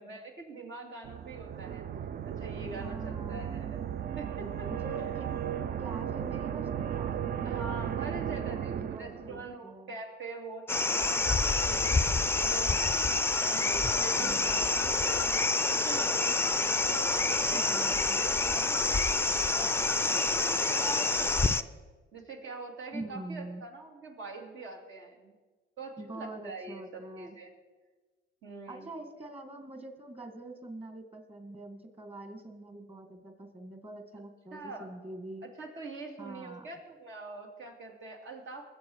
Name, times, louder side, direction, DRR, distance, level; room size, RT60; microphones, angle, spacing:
voice 1, 0.0-1.8 2.4-3.8 4.1-4.7 5.0-5.3 7.4-8.7 9.0-13.1 13.4-16.5 16.9-21.7 22.1-25.3 25.8-27.5 28.4-28.9 34.5-34.9 35.6-38.7, right 3 dB, 75° right, 1 dB, 2.5 m, -44 dB
sound 1, 1.0-9.6, right 9 dB, 50° right, 0.5 m, -35 dB
voice 2, 2.8-3.6 4.7-5.3 5.8-10.0 14.2-14.6 17.5-18.2 22.9-23.6 26.0-27.4 28.7-35.5 36.2-36.7, right 2 dB, 30° right, 6 dB, 2.0 m, -44 dB
sound 2, 10.7-21.6, left 3 dB, 10° left, 0.4 m, -27 dB
21.0 x 7.8 x 4.8 m, 1.3 s
cardioid pair, 90°, 20 cm